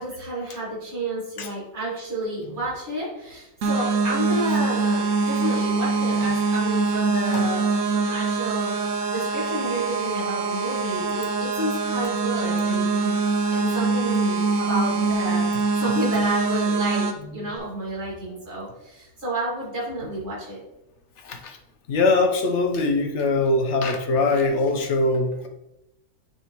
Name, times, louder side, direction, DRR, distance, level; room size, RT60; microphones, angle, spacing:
voice 1, 0.0-13.2 13.5-20.6, right 1 dB, 45° right, -6 dB, 2.7 m, -30 dB
sound 1, 3.6-17.1, right 4 dB, 65° right, 0.9 m, -24 dB
voice 2, 17.2-17.5 21.2-21.6 21.9-25.5, left 3 dB, 55° left, 4 dB, 0.9 m, -23 dB
9.9 x 3.4 x 3.0 m, 0.93 s
omnidirectional pair, 1.6 m